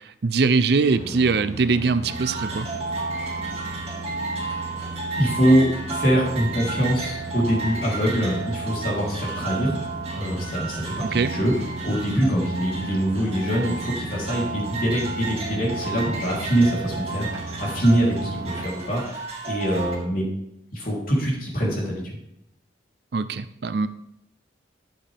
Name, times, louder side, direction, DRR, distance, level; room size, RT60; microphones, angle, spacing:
voice 1, 0.0-2.7 11.0-11.3 23.1-23.9, right 4 dB, 60° right, 13 dB, 0.5 m, -22 dB
sound 1, 0.9-18.6, right 1 dB, 20° right, 2.0 m, -37 dB
sound 2, 2.1-19.9, right 4 dB, 35° right, 2.1 m, -33 dB
voice 2, 4.4-4.9 5.2-9.8 10.1-11.5 11.8-20.2 20.7-22.2, equal, 50° left, -4 dB, 3.5 m, -24 dB
11.0 x 7.7 x 3.5 m, 0.80 s
head